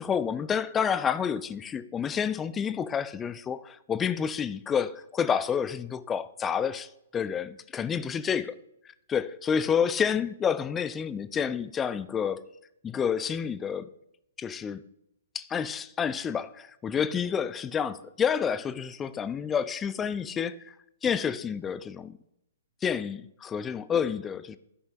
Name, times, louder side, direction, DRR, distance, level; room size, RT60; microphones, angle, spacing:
voice 1, 0.0-8.4 9.1-12.4 12.8-13.9 14.4-14.8 15.3-20.7 21.0-22.2 22.8-24.6, left 7 dB, 15° left, 0.4 m, -29 dB
13.5 x 5.4 x 2.9 m
figure-of-eight pair, 120°, 0 cm